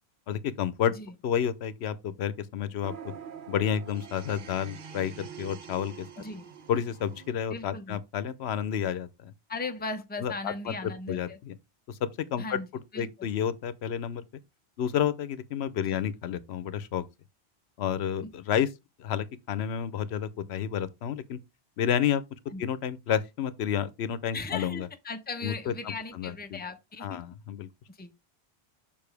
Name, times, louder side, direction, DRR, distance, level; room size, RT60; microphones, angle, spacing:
voice 1, 0.3-0.9 1.2-2.9 3.5-6.0 6.7-9.3 10.2-11.5 11.9-12.0 12.3-12.6 13.0-14.2 14.8-17.0 17.8-18.7 19.0-21.4 21.8-22.2 22.6-24.9 25.4-26.6 27.0-27.7, left 9 dB, 85° left, 0.9 m, -30 dB
sound 1, 2.8-7.3, right 7 dB, 55° right, 0.8 m, -45 dB
voice 2, 7.5-8.0 9.5-11.4 12.4-12.7 12.9-13.1 15.9-16.0 22.5-22.6 24.3-27.2 27.9-28.1, left 3 dB, 10° left, 0.6 m, -37 dB
6.9 x 5.4 x 3.3 m
omnidirectional pair, 1.1 m